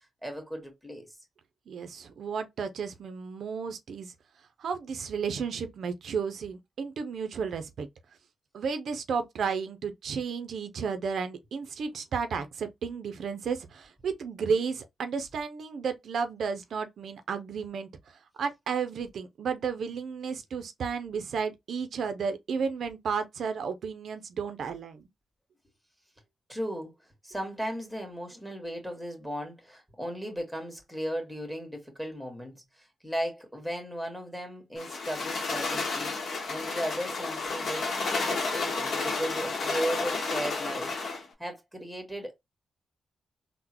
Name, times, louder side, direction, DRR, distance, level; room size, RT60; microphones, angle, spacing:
voice 1, 0.2-1.1 26.5-26.9 27.2-37.9 38.2-42.3, equal, 5° left, 1.6 m, -36 dB
voice 2, 1.7-4.1 4.6-7.9 8.5-25.1, right 6 dB, 75° right, 0.4 m, -33 dB
sound 1, 34.8-41.3, left 3 dB, 65° left, 0.8 m, -31 dB
3.7 x 2.0 x 2.8 m
cardioid pair, 60°, 0 cm